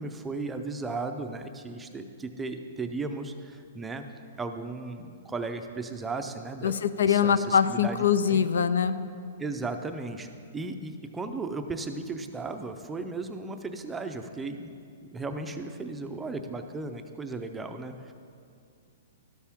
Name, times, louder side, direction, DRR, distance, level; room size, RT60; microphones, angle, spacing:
voice 1, 0.0-4.0 4.4-6.8 7.1-8.4 9.4-14.7 15.0-18.1, right 3 dB, 10° right, 6 dB, 0.5 m, -36 dB
voice 2, 6.6-9.0, left 7 dB, 80° left, 13 dB, 0.4 m, -23 dB
12.5 x 7.2 x 3.5 m, 2.3 s
hypercardioid pair, 150°, 0 cm